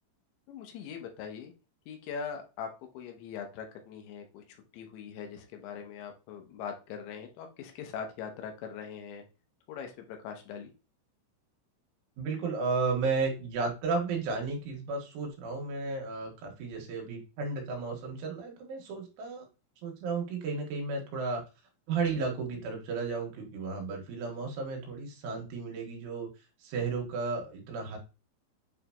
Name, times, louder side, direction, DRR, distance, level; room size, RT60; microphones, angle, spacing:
voice 1, 0.5-1.5 1.9-2.7 2.9-4.4 4.7-9.2 9.7-10.7, left 7 dB, 75° left, 4 dB, 3.1 m, -41 dB
voice 2, 12.2-19.5 19.8-21.4 21.9-26.3 26.6-28.0, right 4 dB, 90° right, 1 dB, 4.0 m, -33 dB
9.1 x 3.6 x 2.9 m, 0.31 s
omnidirectional pair, 5.4 m